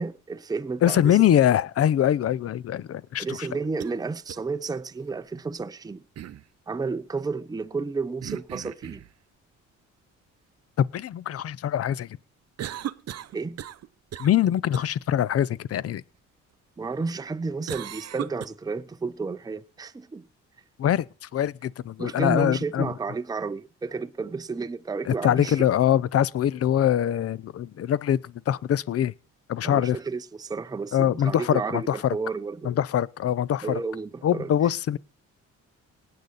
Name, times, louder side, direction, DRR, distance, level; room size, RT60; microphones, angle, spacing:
voice 1, 0.0-1.3 3.2-6.0 6.7-9.0 13.3-13.6 16.8-20.3 22.0-25.6 29.6-32.7 33.6-34.5, right 4 dB, 15° right, 0.6 m, -32 dB
voice 2, 0.8-3.5 10.8-12.1 14.2-16.0 20.8-22.9 25.1-29.1 29.5-30.0 30.9-32.0 32.6-33.8 34.2-35.0, left 10 dB, 50° left, 0.6 m, -23 dB
sound 1, 3.4-3.9 4.3-4.4 6.2-6.4 8.2-9.1 12.6-13.9 14.1-14.4 14.7-14.9 17.7-18.5, right 11 dB, 55° right, 0.7 m, -36 dB
19.0 x 8.6 x 4.0 m
cardioid pair, 90°, 30 cm